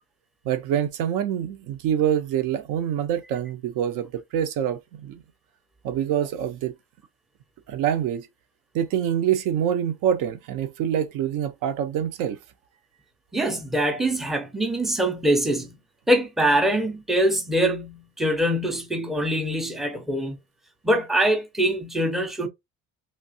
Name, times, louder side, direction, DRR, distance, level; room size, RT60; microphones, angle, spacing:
voice 1, 0.4-5.2 5.8-6.7 7.7-8.3 8.7-12.4, right 9 dB, 80° right, 0.8 m, -25 dB
voice 2, 13.3-15.8 16.1-20.4 20.8-22.5, right 1 dB, ahead, 0.5 m, -23 dB
3.3 x 2.8 x 2.7 m
cardioid pair, 175°, 32 cm